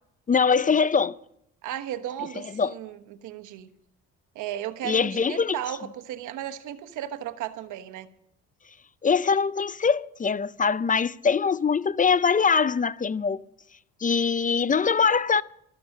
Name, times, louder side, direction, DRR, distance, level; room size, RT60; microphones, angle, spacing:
voice 1, 0.3-1.2 2.6-2.7 4.8-5.6 9.0-13.4 14.0-15.4, left 5 dB, 25° left, 0.5 m, -22 dB
voice 2, 1.6-3.7 4.3-8.1, right 11 dB, 90° right, 1.2 m, -35 dB
13.5 x 12.5 x 6.5 m
cardioid pair, 90°, 30 cm